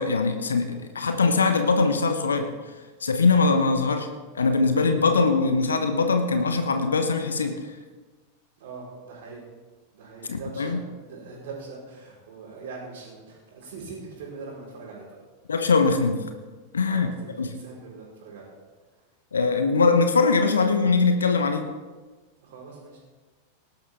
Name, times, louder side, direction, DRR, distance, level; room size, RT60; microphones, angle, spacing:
voice 1, 0.0-2.5 3.0-4.1 4.3-7.5 10.3-10.8 15.5-16.2 16.7-17.1 17.4-17.5 19.3-21.6, left 4 dB, 70° left, 7 dB, 1.0 m, -22 dB
voice 2, 8.6-9.4 9.9-15.2 16.9-18.5 22.4-23.0, right 4 dB, 55° right, -7 dB, 4.3 m, -42 dB
19.5 x 12.0 x 3.5 m, 1.3 s
figure-of-eight pair, 90°, 0 cm